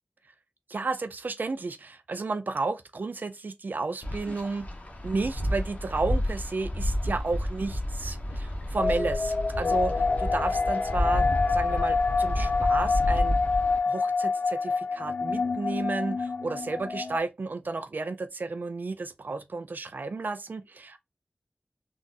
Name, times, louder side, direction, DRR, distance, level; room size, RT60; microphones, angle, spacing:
voice 1, 0.7-4.7 5.0-13.4 13.8-21.0, right 3 dB, 75° right, 0.4 m, -32 dB
Wind, 4.0-13.8, left 1 dB, 45° left, 0.9 m, -30 dB
sound 1, 8.8-17.2, left 4 dB, 80° left, 0.3 m, -27 dB
3.7 x 2.4 x 2.5 m
wide cardioid pair, 50°, 3 cm